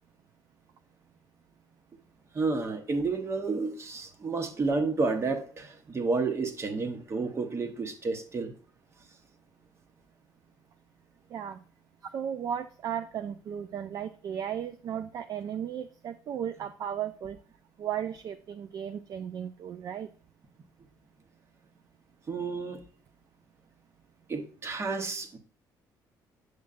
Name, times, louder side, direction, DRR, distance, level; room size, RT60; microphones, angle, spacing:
voice 1, 2.3-8.5 22.3-22.8 24.3-25.4, right 3 dB, 35° right, 8 dB, 1.1 m, -30 dB
voice 2, 11.3-11.6 12.1-17.4 17.8-20.1, right 9 dB, 55° right, 12 dB, 0.4 m, -35 dB
8.1 x 6.3 x 2.5 m, 0.42 s
cardioid pair, 100°, 8 cm